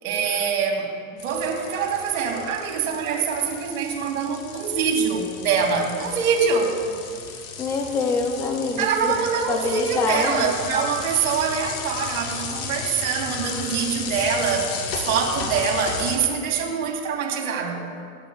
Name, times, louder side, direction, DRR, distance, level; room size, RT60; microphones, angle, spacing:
voice 1, 0.0-6.8 8.8-14.8 15.1-17.8, right 6 dB, 80° right, 1 dB, 2.7 m, -24 dB
sound 1, 1.2-16.2, left 5 dB, 35° left, 1.5 m, -34 dB
voice 2, 7.6-9.2 9.5-10.5, left 4 dB, 10° left, 3 dB, 0.3 m, -25 dB
25.5 x 10.5 x 2.4 m, 2.3 s
supercardioid pair, 160°, 41 cm